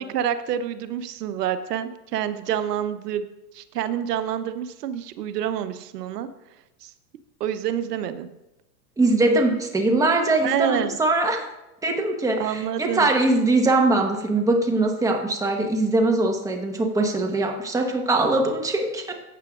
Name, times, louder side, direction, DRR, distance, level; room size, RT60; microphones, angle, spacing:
voice 1, 0.0-3.3 3.5-6.3 6.8-6.9 7.4-8.3 10.4-10.9 12.4-13.1, right 9 dB, 85° right, 11 dB, 0.9 m, -27 dB
voice 2, 9.0-11.5 11.8-19.1, right 2 dB, 5° right, 3 dB, 1.2 m, -22 dB
15.0 x 8.5 x 2.4 m, 0.96 s
supercardioid pair, 135°, 46 cm